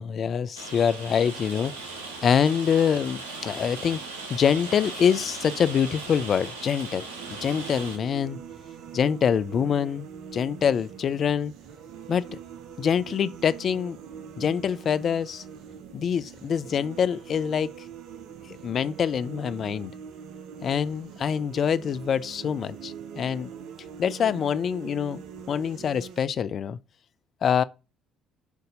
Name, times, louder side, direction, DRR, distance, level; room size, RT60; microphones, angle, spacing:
voice 1, 0.0-4.0 4.3-7.0 7.4-8.4 8.9-10.1 10.3-11.5 12.1-12.3 12.8-14.0 14.4-15.4 15.9-17.7 18.6-19.9 20.6-23.5 24.0-26.8 27.4-27.6, left 7 dB, 50° left, 0.4 m, -25 dB
Rain, 0.6-8.0, right 3 dB, 85° right, 1.0 m, -38 dB
sound 1, 7.2-26.2, right 7 dB, 65° right, 0.7 m, -43 dB
8.1 x 2.7 x 5.1 m
hypercardioid pair, 55°, 0 cm